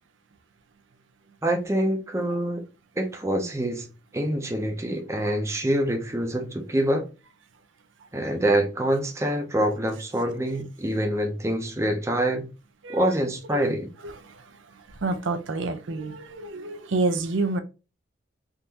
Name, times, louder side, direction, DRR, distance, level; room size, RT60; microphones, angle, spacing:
voice 1, 1.4-2.6 3.0-3.9 4.1-7.1 8.1-12.5 12.9-13.9, right 1 dB, 15° right, 0.6 m, -25 dB
voice 2, 12.8-13.1 13.5-13.7 14.0-17.6, right 3 dB, 85° right, 0.5 m, -29 dB
3.6 x 2.6 x 2.8 m
head